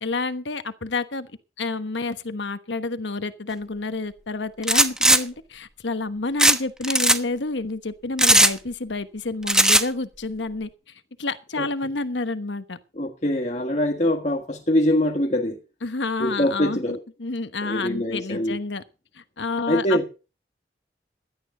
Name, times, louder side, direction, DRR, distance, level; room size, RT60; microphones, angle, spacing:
voice 1, 0.0-1.3 1.6-10.7 11.2-12.8 15.8-18.8 19.1-20.0, left 3 dB, 90° left, 1.2 m, -29 dB
sound 1, 4.6-5.2 6.4-6.6 6.8-7.2 8.2-8.5 9.5-9.9, right 1 dB, 5° right, 1.0 m, -16 dB
voice 2, 13.0-15.6 16.2-17.0 17.6-18.6 19.7-20.0, left 1 dB, 40° left, 1.6 m, -23 dB
16.5 x 12.0 x 3.9 m
head